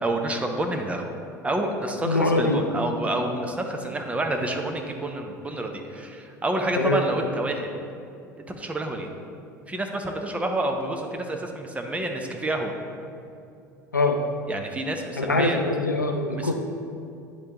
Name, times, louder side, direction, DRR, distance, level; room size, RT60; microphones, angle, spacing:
voice 1, 0.0-1.1 1.4-7.7 8.5-9.1 9.7-12.7 14.5-15.6 16.3-16.5, right 1 dB, 15° right, 3 dB, 0.7 m, -28 dB
voice 2, 2.0-2.6 6.8-7.0 13.9-14.2 15.2-16.5, left 2 dB, 90° left, 3 dB, 0.5 m, -23 dB
9.6 x 3.8 x 2.9 m, 2.5 s
figure-of-eight pair, 70°, 10 cm